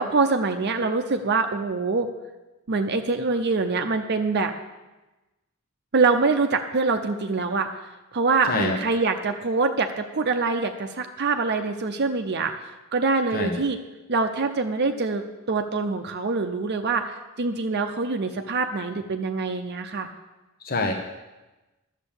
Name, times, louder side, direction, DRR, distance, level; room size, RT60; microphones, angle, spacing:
voice 1, 0.0-2.1 2.7-4.5 5.9-7.7 8.1-13.8 14.1-20.1, right 4 dB, 50° right, 6 dB, 0.6 m, -24 dB
voice 2, 8.5-8.8 13.3-13.6 20.6-20.9, left 3 dB, 40° left, 2 dB, 1.0 m, -25 dB
11.5 x 7.4 x 7.0 m, 1.1 s
head